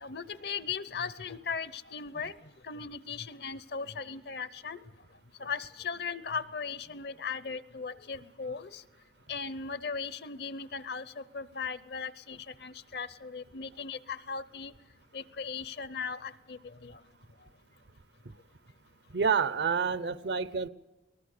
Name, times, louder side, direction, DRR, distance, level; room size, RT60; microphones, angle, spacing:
voice 1, 0.0-2.3 2.6-4.8 5.4-8.8 9.3-14.7 15.1-17.0, left 5 dB, 60° left, 15 dB, 0.8 m, -38 dB
voice 2, 19.1-20.7, right 6 dB, 65° right, 16 dB, 0.7 m, -28 dB
22.5 x 19.0 x 6.7 m, 1.1 s
head